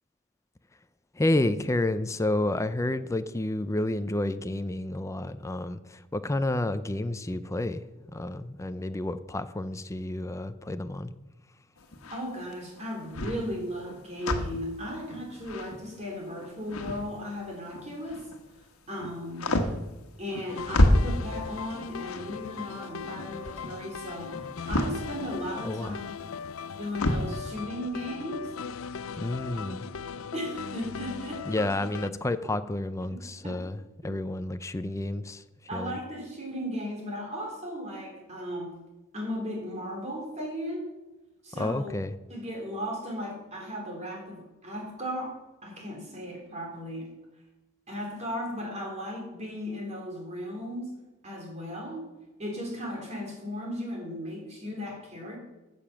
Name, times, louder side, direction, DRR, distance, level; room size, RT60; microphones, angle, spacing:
voice 1, 1.1-7.8 8.1-11.1 25.6-26.0 29.2-29.9 31.5-35.4 35.7-36.0 41.6-42.2, left 1 dB, 15° left, 11 dB, 0.5 m, -30 dB
sound 1, 11.8-18.5 18.8-27.4, left 1 dB, 85° left, 1.4 m, -30 dB
voice 2, 12.1-18.3 18.9-19.5 20.2-26.0 26.7-28.5 29.5-31.6 33.1-33.6 34.0-34.1 35.7-38.8 39.1-41.0 41.4-41.9 42.3-47.1 47.9-50.9 51.2-52.1 52.4-55.4, equal, 30° right, -1 dB, 3.6 m, -36 dB
sound 2, 20.5-32.1, left 6 dB, 65° left, 0.4 m, -39 dB
14.5 x 6.9 x 6.0 m, 1.1 s
head